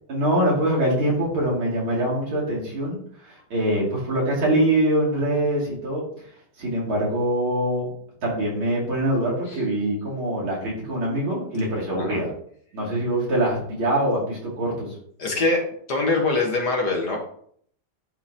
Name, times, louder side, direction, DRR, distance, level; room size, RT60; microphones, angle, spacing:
voice 1, 0.1-6.0 6.6-7.9 8.2-12.3 12.7-14.9, right 1 dB, 70° right, -5 dB, 3.2 m, -24 dB
voice 2, 15.2-15.6 15.9-17.2, left 3 dB, 55° left, 0 dB, 1.6 m, -23 dB
11.0 x 3.8 x 2.7 m, 0.62 s
omnidirectional pair, 2.4 m